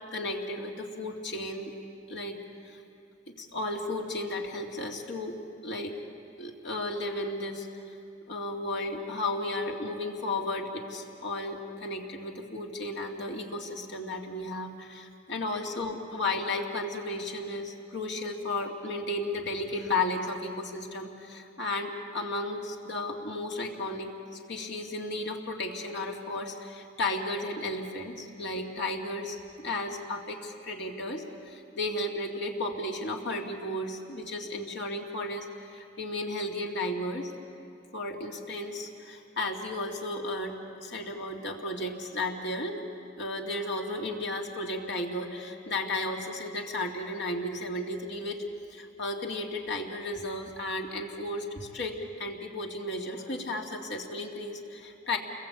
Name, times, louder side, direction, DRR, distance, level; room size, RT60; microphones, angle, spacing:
voice 1, 0.1-1.7 2.1-2.8 3.3-5.4 5.6-6.0 6.4-7.9 8.3-24.1 24.5-37.3 37.9-42.9 43.2-48.4 48.7-55.2, left 2 dB, 65° left, 1 dB, 2.6 m, -34 dB
29.5 x 21.5 x 8.3 m, 2.5 s
head